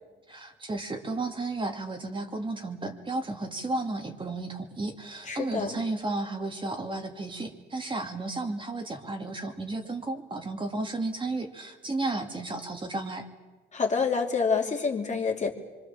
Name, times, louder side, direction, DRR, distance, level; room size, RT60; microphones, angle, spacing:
voice 1, 0.3-13.3, right 2 dB, 25° right, 3 dB, 2.6 m, -33 dB
voice 2, 5.3-5.8 13.7-15.5, left 5 dB, 35° left, 1 dB, 3.0 m, -27 dB
25.0 x 24.5 x 7.4 m, 1.3 s
cardioid pair, 90°, 20 cm